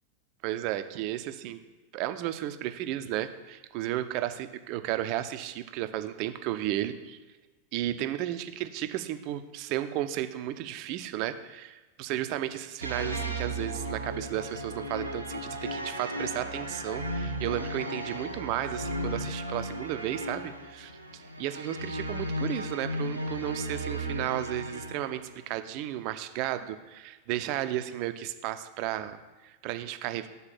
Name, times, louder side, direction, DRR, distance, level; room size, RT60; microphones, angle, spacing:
voice 1, 0.4-1.6 1.9-7.2 7.7-30.3, right 13 dB, 45° right, 10 dB, 0.5 m, -33 dB
sound 1, 12.8-25.3, right 1 dB, 85° right, 0.7 m, -35 dB
6.9 x 4.0 x 5.8 m, 1.2 s
figure-of-eight pair, 90°, 0 cm